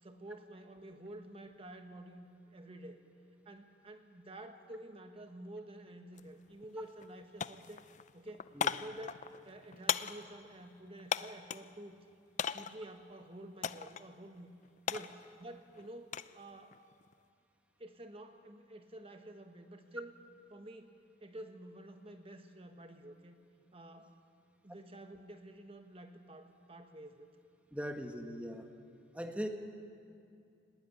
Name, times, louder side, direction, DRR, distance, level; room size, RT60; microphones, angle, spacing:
voice 1, 0.0-3.0 3.4-7.8 8.1-12.0 12.5-14.5 14.9-16.8 17.8-20.2 20.5-23.4 23.7-24.1 24.6-27.3, right 1 dB, 30° right, 6 dB, 1.4 m, -50 dB
sound 1, 6.1-6.3 6.6-7.1 7.4-11.7 12.4-12.9 13.6-14.1 14.4-16.4 16.7-17.1, left 7 dB, 40° left, 0.5 m, -38 dB
voice 2, 27.7-28.7 29.1-29.5, equal, 5° right, 4 dB, 1.4 m, -39 dB
19.0 x 16.5 x 10.0 m, 2.4 s
head